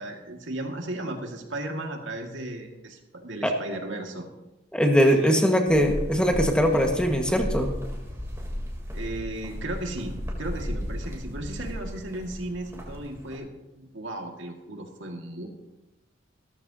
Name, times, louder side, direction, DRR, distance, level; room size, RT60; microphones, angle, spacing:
voice 1, 0.0-4.3 5.0-5.4 8.9-15.5, right 1 dB, 75° right, 2 dB, 2.0 m, -35 dB
voice 2, 4.7-7.7, equal, 5° left, 2 dB, 1.6 m, -21 dB
sound 1, 5.7-13.4, equal, 15° right, 3.3 m, -35 dB
17.5 x 14.0 x 2.9 m, 1.0 s
head